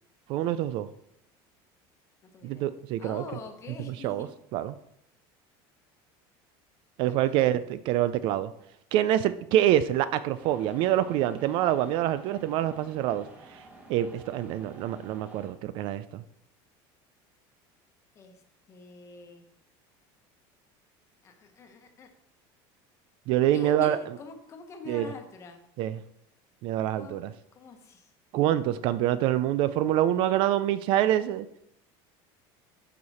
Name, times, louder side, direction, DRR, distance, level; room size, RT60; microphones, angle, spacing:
voice 1, 0.3-0.9 2.4-3.2 3.9-4.3 4.5-4.7 7.0-8.5 8.9-13.6 13.9-16.2 23.3-24.0 24.9-25.1 25.8-26.0 26.6-27.3 28.3-31.5, right 12 dB, 45° right, 14 dB, 0.3 m, -26 dB
voice 2, 2.2-2.7 3.0-4.3 7.0-7.4 18.1-18.4 18.7-19.5 21.2-22.1 23.5-25.6 27.0-27.2 27.5-28.1, left 4 dB, 25° left, 5 dB, 1.1 m, -44 dB
sound 1, 10.4-15.5, right 1 dB, 10° right, 1.1 m, -51 dB
12.0 x 4.8 x 4.2 m, 0.76 s
cardioid pair, 170°, 12 cm